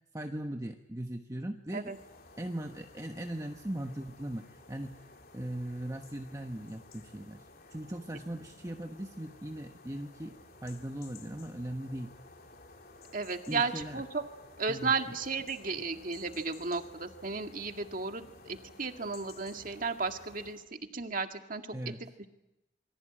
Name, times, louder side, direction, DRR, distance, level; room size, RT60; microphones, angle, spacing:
voice 1, 0.1-1.9 2.4-5.0 5.3-7.4 7.7-10.4 10.6-12.1 13.5-14.0 14.7-14.9 21.7-22.1, right 1 dB, 20° right, 4 dB, 1.2 m, -39 dB
sound 1, 1.8-20.7, left 3 dB, 55° left, 3.2 m, -55 dB
voice 2, 13.1-14.2 14.6-20.6 20.9-21.6 22.0-22.3, right 4 dB, 50° right, 5 dB, 2.1 m, -34 dB
28.0 x 24.0 x 8.8 m, 0.93 s
head